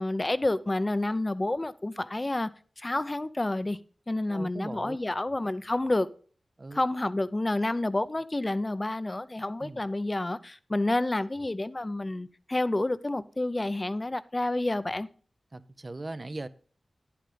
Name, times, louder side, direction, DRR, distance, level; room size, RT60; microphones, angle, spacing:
voice 1, 0.0-2.5 2.8-3.8 4.1-6.1 6.7-15.1, left 2 dB, 35° left, 0.6 m, -29 dB
voice 2, 4.3-5.0 6.6-6.8 9.6-9.8 15.5-16.5, right 2 dB, 45° right, 0.7 m, -39 dB
10.5 x 8.5 x 3.8 m
cardioid pair, 40°, 0 cm